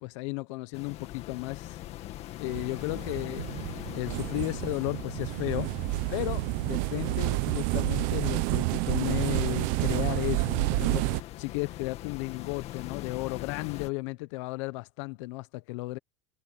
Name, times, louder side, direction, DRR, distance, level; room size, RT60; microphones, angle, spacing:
voice 1, 0.0-1.8 2.4-3.4 4.0-5.7 6.1-16.0, left 24 dB, 75° left, 0.9 m, -34 dB
sound 1, 0.7-13.9, left 14 dB, 45° left, 2.0 m, -42 dB
sound 2, 2.5-11.2, right 23 dB, 60° right, 0.8 m, -29 dB
cardioid pair, 155°, 15 cm